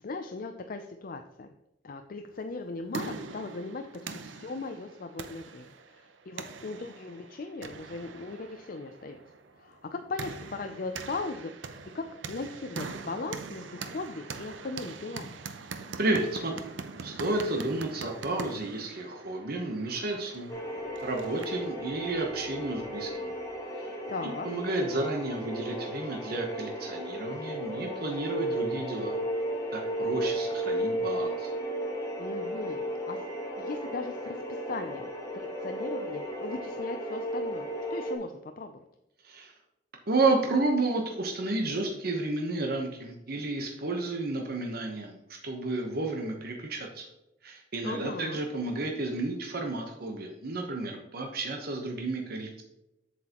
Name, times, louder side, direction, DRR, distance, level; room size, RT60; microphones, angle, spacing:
voice 1, 0.0-1.5 1.8-9.2 9.6-15.4 24.1-24.5 32.2-33.2 33.6-38.8 47.8-48.4, left 3 dB, 50° left, 6 dB, 0.5 m, -38 dB
sound 1, 2.5-21.7, right 4 dB, 80° right, 0.7 m, -43 dB
voice 2, 16.0-16.7 17.0-20.5 21.0-23.3 23.8-23.9 24.4-29.1 29.7-31.5 39.2-39.5 40.1-47.1 47.4-52.6, right 2 dB, 55° right, 2 dB, 1.1 m, -31 dB
sound 2, 20.5-38.2, right 1 dB, 20° left, 1.4 m, -34 dB
7.9 x 7.6 x 3.0 m, 0.91 s
head